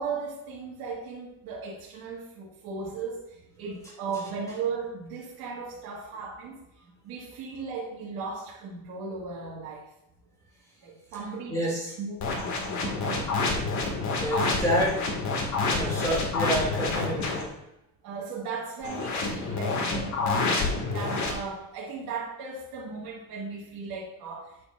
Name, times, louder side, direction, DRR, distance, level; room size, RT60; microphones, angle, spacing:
voice 1, 0.0-9.9 10.8-13.7 14.3-14.6 15.5-16.0 18.0-24.5, right 4 dB, 70° right, -5 dB, 1.8 m, -37 dB
voice 2, 11.5-11.9 14.2-15.1 15.7-17.6, right 1 dB, 10° left, -5 dB, 2.3 m, -28 dB
sound 1, 12.2-17.4 18.8-21.3, left 3 dB, 50° left, 1.9 m, -28 dB
9.0 x 6.9 x 2.5 m, 0.85 s
cardioid pair, 135°, 37 cm